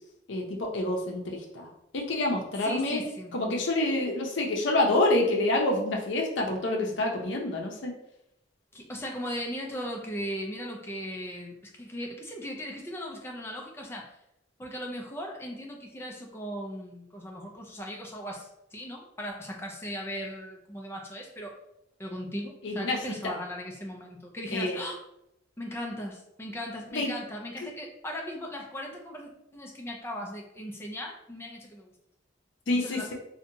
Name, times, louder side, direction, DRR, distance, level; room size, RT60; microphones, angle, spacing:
voice 1, 0.3-3.0 3.3-7.9 22.6-23.3 24.5-24.8 26.9-27.2 27.6-27.7 32.7-33.1, left 2 dB, 75° left, 0 dB, 0.6 m, -28 dB
voice 2, 2.6-3.3 8.7-14.1 14.6-21.5 22.0-25.0 25.6-31.9 32.7-33.1, equal, 15° left, 0 dB, 0.4 m, -38 dB
2.7 x 2.2 x 2.6 m, 0.82 s
head